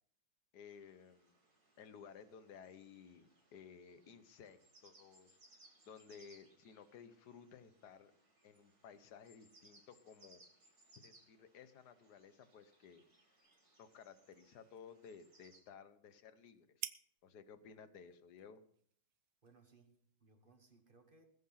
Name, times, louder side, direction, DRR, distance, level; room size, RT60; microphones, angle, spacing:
voice 1, 0.5-1.3 1.8-5.4 5.9-8.1 8.4-10.7 11.0-13.0 13.8-16.9 17.2-18.6, left 7 dB, 60° left, 12 dB, 1.4 m, -57 dB
sound 1, 0.7-15.6, right 2 dB, 50° right, 4.0 m, -69 dB
sound 2, 12.5-20.2, right 12 dB, 80° right, 1.5 m, -56 dB
voice 2, 19.4-21.3, right 3 dB, 30° right, 6 dB, 1.4 m, -67 dB
20.5 x 7.6 x 5.7 m, 0.64 s
omnidirectional pair, 2.2 m